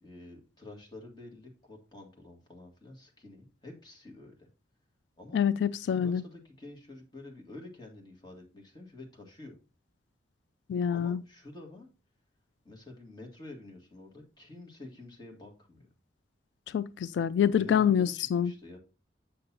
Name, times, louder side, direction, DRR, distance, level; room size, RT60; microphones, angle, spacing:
voice 1, 0.0-4.5 5.2-5.4 5.9-9.6 10.9-11.9 12.6-15.9 17.5-18.8, left 2 dB, 25° left, 1.9 m, -48 dB
voice 2, 5.3-6.2 10.7-11.2 16.7-18.5, left 8 dB, 85° left, 0.3 m, -26 dB
7.6 x 6.6 x 2.8 m
head